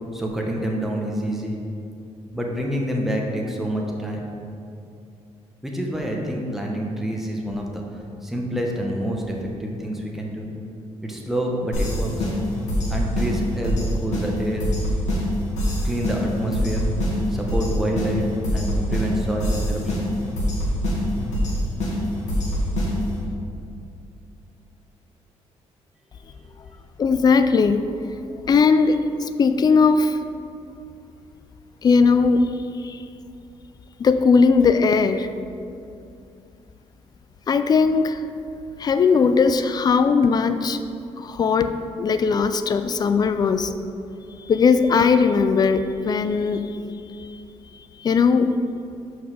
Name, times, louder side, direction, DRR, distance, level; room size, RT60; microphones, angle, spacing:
voice 1, 0.1-1.6 2.3-4.3 5.6-7.6 8.2-10.5 11.0-12.2 12.9-14.7 15.8-16.9 17.3-18.2 18.5-20.1 26.2-26.5, right 1 dB, 5° right, -1 dB, 1.0 m, -27 dB
sound 1, 11.7-23.2, equal, 85° left, 1.7 m, -25 dB
voice 2, 27.0-27.8 28.5-30.2 31.8-33.0 34.0-35.3 37.5-38.2 38.8-40.8 41.2-43.7 44.4-46.6 47.2-47.3 48.0-48.6, left 5 dB, 35° left, 10 dB, 0.4 m, -19 dB
5.5 x 4.7 x 6.3 m, 2.6 s
cardioid pair, 120°, 12 cm